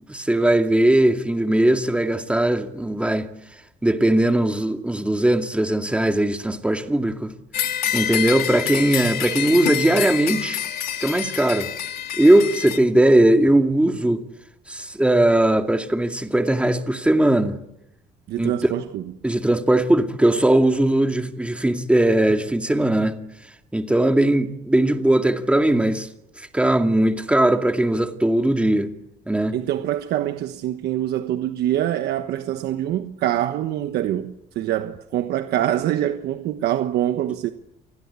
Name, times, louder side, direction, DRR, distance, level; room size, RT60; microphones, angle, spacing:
voice 1, 0.1-3.3 3.8-7.3 7.9-10.6 11.0-11.7 12.2-14.2 14.7-17.6 18.4-18.5 19.2-23.2 23.7-26.1 26.4-28.9 29.3-29.6, right 1 dB, 5° right, 2.3 m, -19 dB
sound 1, 7.5-12.8, left 10 dB, 65° left, 2.8 m, -27 dB
voice 2, 18.3-19.0 29.5-37.5, right 12 dB, 75° right, 1.3 m, -24 dB
28.5 x 20.5 x 8.3 m
cardioid pair, 110°, 17 cm